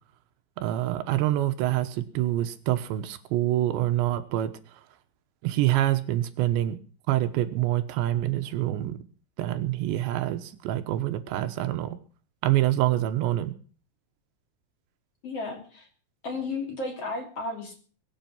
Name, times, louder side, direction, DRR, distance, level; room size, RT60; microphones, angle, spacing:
voice 1, 0.6-4.5 5.4-6.8 7.1-9.0 9.4-12.0 12.4-13.5, right 14 dB, 80° right, 9 dB, 3.2 m, -26 dB
voice 2, 15.2-15.9 16.2-17.7, left 3 dB, 35° left, 2 dB, 3.6 m, -33 dB
23.0 x 8.2 x 5.9 m, 0.42 s
omnidirectional pair, 5.2 m